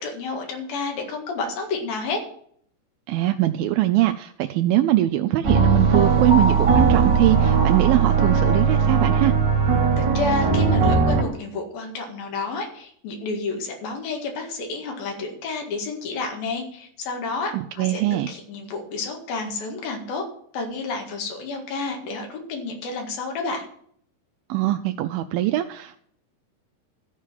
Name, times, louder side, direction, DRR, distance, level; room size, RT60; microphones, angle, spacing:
voice 1, 0.0-2.2 10.0-20.3 20.5-23.7, left 3 dB, 75° left, 3 dB, 3.7 m, -30 dB
voice 2, 3.1-9.3 17.5-18.3 24.5-26.0, right 15 dB, 85° right, 7 dB, 2.3 m, -22 dB
sound 1, 5.4-11.2, right 5 dB, 40° right, 1.9 m, -19 dB
14.0 x 4.9 x 7.4 m, 0.63 s
omnidirectional pair, 4.3 m